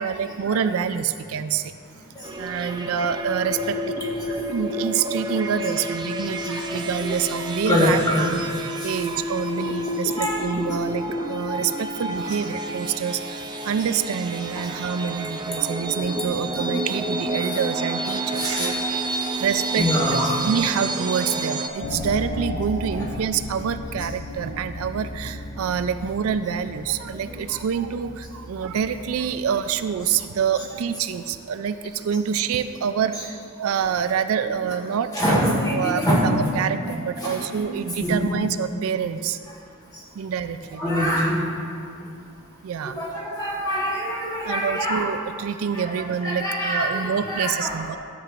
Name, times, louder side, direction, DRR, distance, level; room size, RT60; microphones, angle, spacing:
voice 1, 0.0-1.7 2.4-3.8 4.5-8.4 8.8-18.7 19.1-19.9 20.1-39.4 40.2-40.9 42.6-43.0 44.4-48.0, right 7 dB, 80° right, 10 dB, 0.4 m, -27 dB
sound 1, 2.2-21.7, right 1 dB, 20° right, 0.4 m, -29 dB
voice 2, 6.4-8.3 8.8-8.9 9.6-9.7 10.0-10.6 12.2-12.4 14.5-14.7 16.5-16.6 18.4-18.7 19.7-20.3 23.0-23.1 27.2-27.4 33.1-33.2 35.1-37.7 38.0-38.4 40.8-41.4 42.8-45.1 45.7-47.8, equal, 20° left, -5 dB, 1.9 m, -25 dB
sound 2, 12.9-23.4, right 1 dB, 60° right, 1.2 m, -42 dB
sound 3, 21.8-30.8, left 2 dB, 55° left, 0.8 m, -36 dB
13.0 x 7.6 x 2.5 m, 2.4 s
head